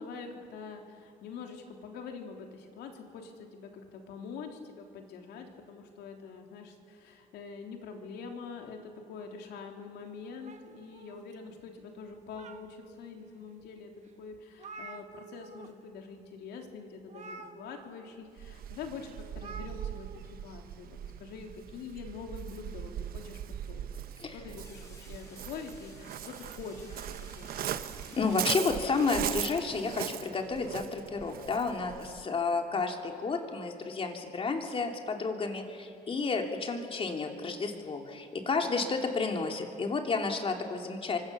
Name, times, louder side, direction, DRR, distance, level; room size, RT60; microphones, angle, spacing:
voice 1, 0.0-13.9 14.2-23.4 23.7-24.0 24.3-27.6 32.2-32.3 38.5-38.7, left 5 dB, 80° left, 3 dB, 3.3 m, -45 dB
sound 1, 10.4-11.6 12.1-13.0 13.6-13.7 14.1-14.2 14.3-15.7 16.0-16.2 17.1-18.1 19.3-20.2, right 4 dB, 45° right, 1.7 m, -48 dB
Waves surf, 18.4-32.2, right 10 dB, 60° right, 1.0 m, -40 dB
sound 2, 24.6-30.7, left 1 dB, 15° left, 6.4 m, -55 dB
voice 2, 28.1-41.2, left 4 dB, 35° left, 3 dB, 3.1 m, -31 dB
29.5 x 24.5 x 6.9 m, 2.5 s
cardioid pair, 110°, 17 cm